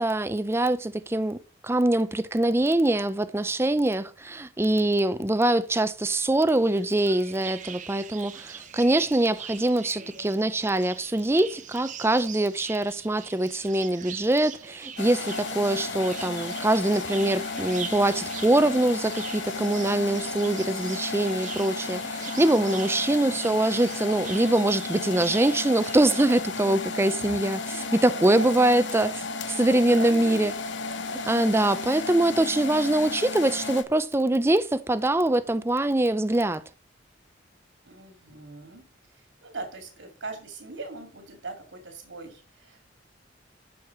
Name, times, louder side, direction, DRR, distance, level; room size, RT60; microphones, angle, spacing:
voice 1, 0.0-1.4 1.6-29.1 29.5-30.5 31.1-36.6, right 1 dB, 15° right, 0.5 m, -23 dB
sound 1, 6.5-26.4, right 7 dB, 40° right, 0.8 m, -42 dB
voice 2, 9.8-10.3 27.1-28.9 29.6-30.5 31.0-31.2 37.8-38.8 39.1-42.8, right 3 dB, 80° right, 2.4 m, -41 dB
sound 2, 15.0-33.8, left 3 dB, 70° left, 1.0 m, -34 dB
12.0 x 4.8 x 5.9 m
head